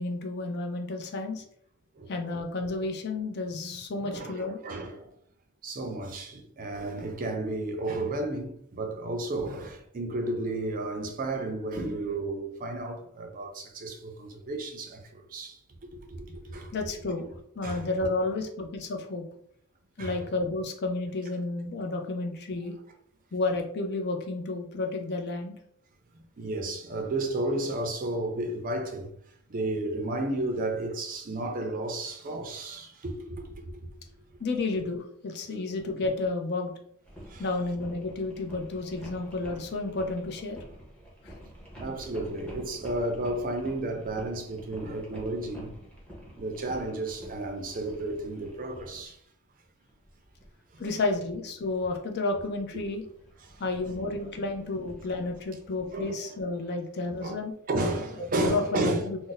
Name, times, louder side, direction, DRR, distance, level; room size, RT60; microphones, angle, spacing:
voice 1, 0.0-1.4 2.1-4.6 16.7-17.3 17.6-19.3 20.0-22.8 23.3-25.6 34.4-36.7 37.4-40.6 41.2-41.3 50.8-53.0 53.6-57.5 58.4-59.2, left 3 dB, 50° left, 0.5 m, -31 dB
voice 2, 2.0-2.4 4.1-5.1 5.6-15.6 15.9-16.8 17.6-17.9 20.0-20.2 26.4-29.1 29.5-33.9 37.3-37.5 41.8-45.7 46.4-49.2 53.4-53.6 55.9-56.2 57.2-57.4 57.7-59.1, right 2 dB, 40° right, 0.4 m, -32 dB
sound 1, 37.0-49.1 49.9-52.0 52.3-56.0, equal, 5° left, 0.8 m, -48 dB
2.5 x 2.0 x 3.9 m
head